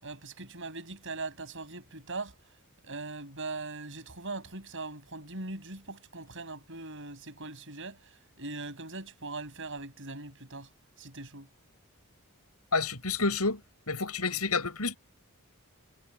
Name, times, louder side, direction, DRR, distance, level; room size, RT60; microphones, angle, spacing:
voice 1, 0.0-2.4 2.8-10.7 11.0-11.5, right 3 dB, 60° right, 7.3 m, -40 dB
voice 2, 12.7-13.6 13.9-15.0, left 4 dB, 85° left, 7.9 m, -29 dB
head